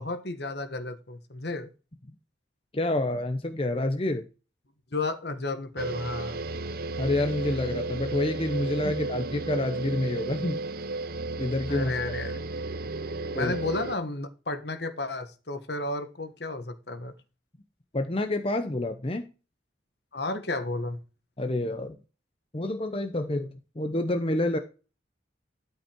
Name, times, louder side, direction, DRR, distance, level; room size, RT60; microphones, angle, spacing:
voice 1, 0.0-1.7 4.9-6.4 8.8-8.9 11.7-12.4 13.3-17.1 20.1-21.0, left 2 dB, 55° left, 10 dB, 1.4 m, -33 dB
voice 2, 2.7-4.2 7.0-10.6 11.4-11.9 13.3-13.5 17.9-19.2 21.4-22.0 22.5-23.5 23.8-24.6, left 1 dB, 30° left, 6 dB, 0.8 m, -28 dB
sound 1, 5.8-14.0, right 2 dB, 50° right, 0.7 m, -33 dB
12.5 x 5.6 x 4.6 m, 0.33 s
head